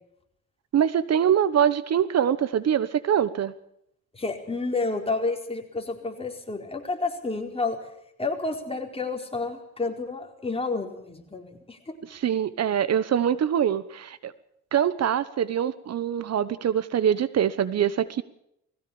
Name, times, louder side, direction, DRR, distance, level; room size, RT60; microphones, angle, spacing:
voice 1, 0.7-3.5 12.1-14.3 14.7-18.2, right 9 dB, 55° right, 16 dB, 1.1 m, -24 dB
voice 2, 4.1-7.8 8.2-11.9, left 3 dB, 20° left, 3 dB, 4.4 m, -30 dB
20.5 x 16.0 x 8.7 m, 0.76 s
cardioid pair, 90°, 30 cm